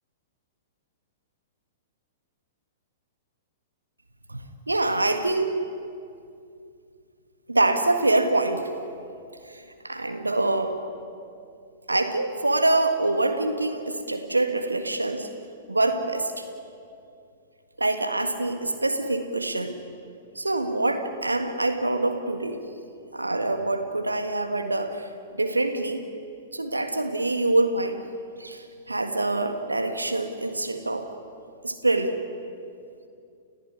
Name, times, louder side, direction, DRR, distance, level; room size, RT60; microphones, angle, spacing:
voice 1, 4.7-5.6 7.5-8.7 9.4-10.7 11.9-15.3 15.7-16.5 17.8-19.8 20.4-22.6 23.1-25.1 25.4-26.0 26.5-28.0 28.4-31.1 31.6-32.2, right 2 dB, 85° right, 6 dB, 1.8 m, -25 dB
30.0 x 16.0 x 9.8 m, 2.5 s
figure-of-eight pair, 105°, 0 cm